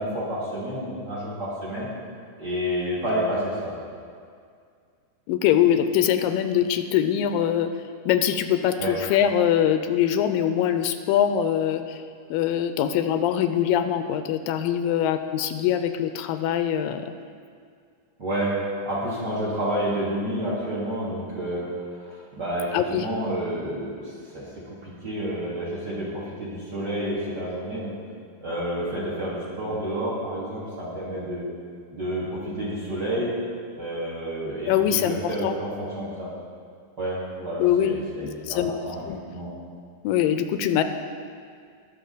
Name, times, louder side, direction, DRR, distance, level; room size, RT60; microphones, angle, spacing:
voice 1, 0.0-1.9 2.4-3.7 8.8-9.0 18.2-18.5 18.8-21.7 22.0-28.0 28.4-31.5 31.9-33.3 33.7-36.3 37.0-39.0 39.3-39.5, right 1 dB, 35° right, -6 dB, 2.4 m, -29 dB
voice 2, 5.3-7.7 8.1-12.0 12.3-17.1 22.7-23.1 34.7-35.6 37.6-37.9 38.2-38.7 39.1-39.2 40.0-40.8, left 10 dB, 85° left, 9 dB, 2.3 m, -23 dB
20.0 x 6.7 x 4.0 m, 2.2 s
omnidirectional pair, 4.0 m